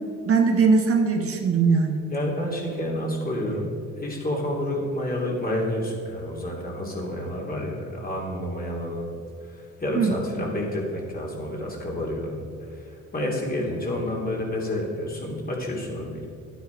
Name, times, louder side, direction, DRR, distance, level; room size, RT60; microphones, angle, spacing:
voice 1, 0.3-2.0 9.9-10.2, right 5 dB, 50° right, 3 dB, 1.3 m, -20 dB
voice 2, 2.1-3.7 4.0-9.1 9.5-12.4 12.7-16.3, left 1 dB, 30° left, -2 dB, 3.0 m, -29 dB
11.0 x 9.5 x 4.7 m, 2.5 s
cardioid pair, 90°, 30 cm